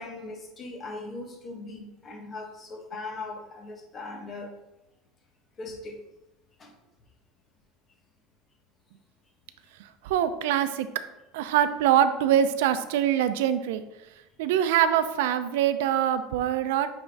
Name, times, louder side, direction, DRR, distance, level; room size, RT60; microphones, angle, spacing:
voice 1, 0.0-4.5 5.6-6.0 6.6-6.7, left 2 dB, 25° left, 2 dB, 1.1 m, -39 dB
voice 2, 9.8-10.9 11.3-13.8 14.4-16.9, right 10 dB, 80° right, 11 dB, 0.5 m, -24 dB
9.3 x 3.6 x 3.4 m, 0.94 s
supercardioid pair, 155°, 0 cm